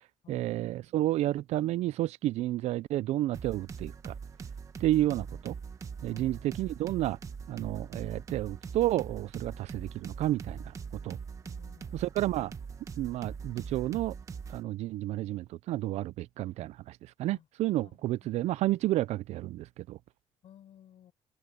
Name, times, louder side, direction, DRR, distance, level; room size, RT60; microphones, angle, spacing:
voice 1, 0.3-4.1 4.8-5.5 6.0-7.2 7.5-10.7 11.0-11.2 11.9-12.5 13.0-14.1 14.5-20.0, right 15 dB, 70° right, 0.4 m, -31 dB
sound 1, 3.3-14.6, right 6 dB, 25° right, 1.2 m, -42 dB
voice 2, 6.1-6.7 11.3-12.1 17.2-17.5 17.8-18.4 20.4-21.1, left 10 dB, 55° left, 4.7 m, -57 dB
open air
cardioid pair, 170°, 12 cm